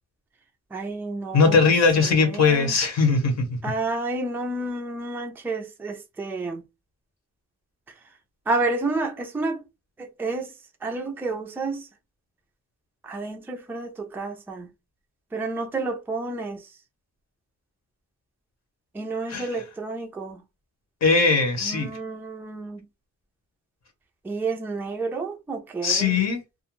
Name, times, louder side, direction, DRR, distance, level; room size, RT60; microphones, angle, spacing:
voice 1, 0.7-1.7 2.1-2.7 3.6-6.6 8.5-9.6 10.0-10.5 10.8-11.9 13.0-14.7 15.3-16.6 18.9-20.4 21.6-22.8 24.2-26.2, right 3 dB, 5° right, 0.3 m, -30 dB
voice 2, 1.3-3.5 19.3-19.6 21.0-22.0 25.8-26.4, left 4 dB, 60° left, 0.9 m, -20 dB
2.4 x 2.2 x 2.9 m
wide cardioid pair, 165°, 30 cm